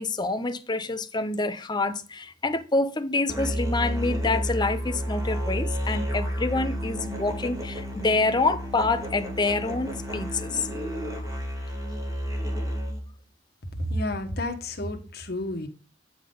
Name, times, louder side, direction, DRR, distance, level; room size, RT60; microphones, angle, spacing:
voice 1, 0.0-10.7, left 3 dB, 25° left, 0.7 m, -27 dB
Musical instrument, 3.3-13.1, equal, 20° right, 1.9 m, -31 dB
voice 2, 13.8-15.7, left 1 dB, 60° left, 1.3 m, -30 dB
9.1 x 3.8 x 5.3 m
head